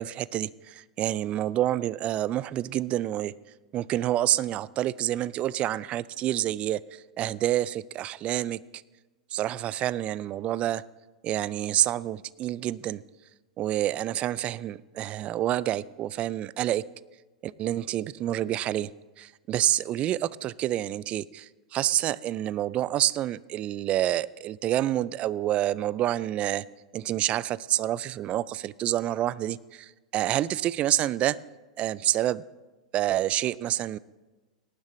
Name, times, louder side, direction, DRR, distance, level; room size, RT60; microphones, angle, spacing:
voice 1, 0.0-3.3 3.7-6.8 7.2-8.6 9.3-10.8 11.2-13.0 13.6-16.8 17.4-18.9 19.2-26.7 26.9-31.4 31.8-32.4 32.9-34.0, right 13 dB, 35° right, 21 dB, 0.3 m, -28 dB
18.5 x 11.0 x 3.1 m, 1.2 s
figure-of-eight pair, 95°, 4 cm